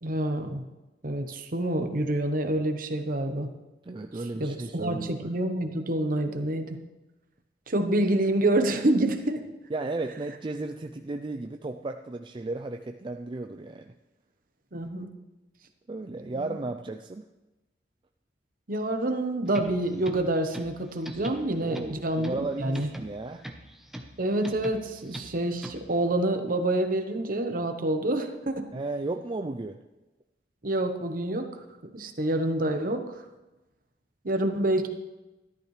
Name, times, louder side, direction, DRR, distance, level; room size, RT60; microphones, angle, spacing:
voice 1, 0.0-0.6 1.0-3.5 4.3-6.8 7.7-9.4 14.7-15.1 16.4-16.5 18.7-22.9 24.2-28.7 30.6-31.5 31.9-33.0 34.2-34.9, right 1 dB, 50° right, 6 dB, 1.0 m, -27 dB
voice 2, 3.8-5.3 9.7-13.9 15.9-17.2 21.6-23.5 28.7-29.8, right 2 dB, 25° right, 5 dB, 0.4 m, -34 dB
sound 1, 19.5-26.0, equal, ahead, 0.8 m, -43 dB
13.5 x 12.0 x 3.3 m, 1.1 s
head